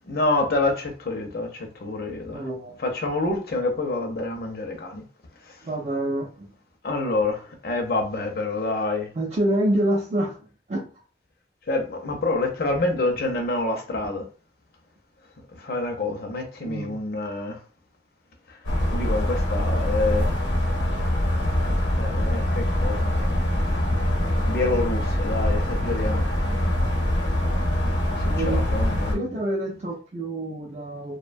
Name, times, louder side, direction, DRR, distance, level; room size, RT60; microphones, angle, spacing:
voice 1, 0.1-2.4 2.8-5.0 6.8-9.1 11.7-14.2 15.5-17.6 18.9-20.3 22.0-23.3 23.7-23.8 24.5-26.3 28.2-29.3, left 2 dB, 55° left, 0.6 m, -27 dB
voice 2, 2.3-2.7 5.6-6.5 9.1-10.4 10.7-10.8 16.6-17.0 28.4-28.7 29.1-31.2, right 1 dB, 40° right, 0.4 m, -27 dB
sound 1, 18.6-29.1, left 1 dB, 85° left, 0.9 m, -24 dB
2.5 x 2.1 x 2.5 m
head